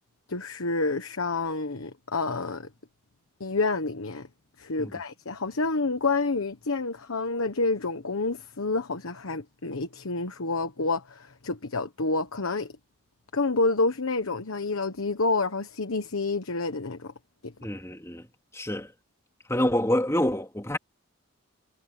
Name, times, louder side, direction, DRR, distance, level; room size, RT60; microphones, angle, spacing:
voice 1, 0.3-2.7 3.4-4.3 4.6-12.7 13.3-17.1 17.4-17.5, left 3 dB, 85° left, 1.2 m, -28 dB
voice 2, 17.6-18.3 18.5-18.9 19.5-20.8, left 1 dB, 15° left, 3.1 m, -27 dB
head